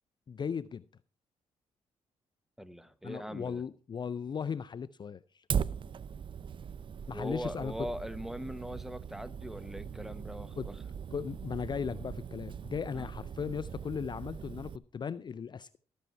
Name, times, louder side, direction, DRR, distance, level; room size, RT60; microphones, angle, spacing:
voice 1, 0.3-0.8 3.0-5.4 7.1-7.9 10.6-10.8 11.1-15.8, left 6 dB, 40° left, 17 dB, 0.5 m, -37 dB
voice 2, 2.6-3.6 7.1-10.7 12.9-13.1, equal, 5° right, 13 dB, 1.0 m, -41 dB
Fire, 5.5-14.8, right 7 dB, 45° right, 0.5 m, -39 dB
13.0 x 8.3 x 4.6 m, 0.39 s
supercardioid pair, 70°, 12 cm